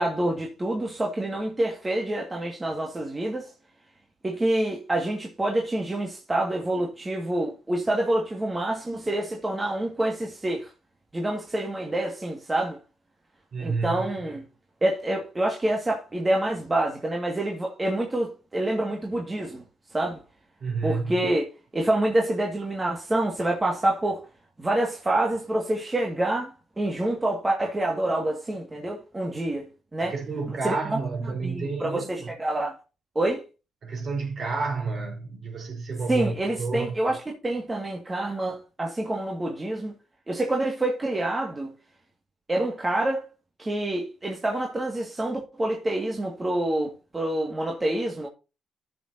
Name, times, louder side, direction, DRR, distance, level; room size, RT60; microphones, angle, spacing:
voice 1, 0.0-3.5 4.2-10.7 11.1-12.8 13.6-14.4 14.8-19.6 19.9-20.2 20.8-21.4 21.7-24.2 24.6-26.5 26.8-30.1 30.6-31.0 31.4-32.8 33.2-33.4 36.1-39.9 40.3-41.7 42.5-43.3 43.6-48.3, right 1 dB, 20° right, 2.1 m, -27 dB
voice 2, 13.5-14.1 20.6-21.2 30.0-32.3 33.8-37.0, right 4 dB, 50° right, 4.5 m, -30 dB
14.0 x 6.8 x 2.9 m
cardioid pair, 90°, 0 cm